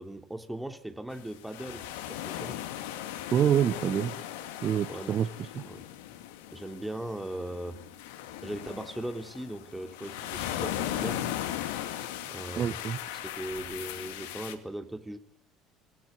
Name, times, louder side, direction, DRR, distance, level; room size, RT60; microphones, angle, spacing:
voice 1, 0.0-2.6 4.9-5.2 5.6-5.9 6.5-7.8 8.4-11.2 12.3-12.9 13.4-15.2, right 1 dB, 5° right, 6 dB, 3.1 m, -39 dB
sound 1, 1.1-14.6, left 12 dB, 65° left, 2.4 m, -38 dB
voice 2, 3.3-4.1 4.6-5.6 12.6-13.0, right 9 dB, 40° right, 14 dB, 1.1 m, -27 dB
27.0 x 20.0 x 9.8 m, 0.72 s
figure-of-eight pair, 60°, 0 cm